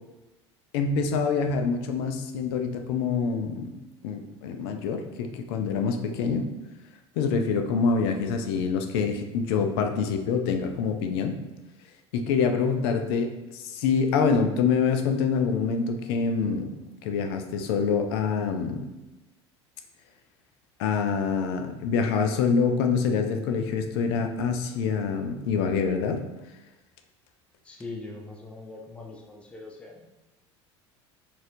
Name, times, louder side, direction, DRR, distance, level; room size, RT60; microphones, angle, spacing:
voice 1, 0.7-3.7 4.0-6.5 7.2-11.4 12.1-16.7 17.0-18.9 20.8-26.2, left 5 dB, 60° left, 6 dB, 0.4 m, -26 dB
voice 2, 27.6-30.1, left 3 dB, 10° left, 1 dB, 0.5 m, -41 dB
4.0 x 2.4 x 2.6 m, 1.0 s
figure-of-eight pair, 70°, 15 cm